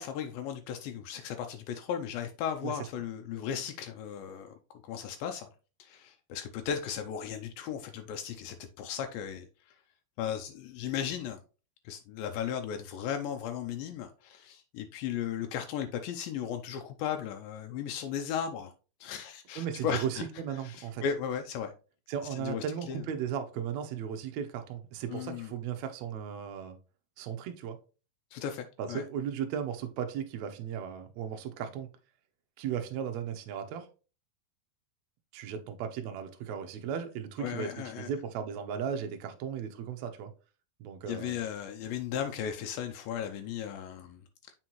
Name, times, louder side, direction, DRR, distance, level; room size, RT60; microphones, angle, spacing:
voice 1, 0.0-4.5 4.8-5.5 5.8-9.8 10.2-11.4 11.9-18.7 19.0-20.1 20.6-21.7 22.4-23.0 25.1-25.5 28.3-29.1 37.4-38.1 41.1-44.2, left 8 dB, 80° left, 2.3 m, -36 dB
voice 2, 19.5-21.0 22.1-26.8 27.2-27.8 28.8-31.9 32.6-33.9 35.3-40.3 40.8-41.4, right 8 dB, 75° right, 1.6 m, -36 dB
7.7 x 4.4 x 3.0 m
omnidirectional pair, 4.2 m